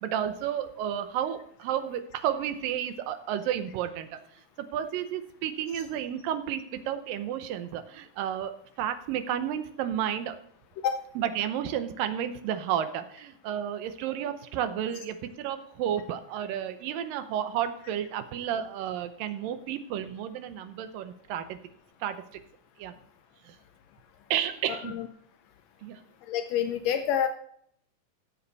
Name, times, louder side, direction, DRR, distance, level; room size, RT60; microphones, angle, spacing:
voice 1, 0.0-10.4 11.2-21.6 22.0-22.4 22.8-22.9 23.4-23.6 24.3-25.0 25.8-26.0, right 10 dB, 85° right, 9 dB, 2.6 m, -32 dB
voice 2, 24.7-25.1 26.3-27.3, left 9 dB, 80° left, 7 dB, 1.5 m, -28 dB
15.0 x 7.2 x 4.1 m, 0.66 s
omnidirectional pair, 3.9 m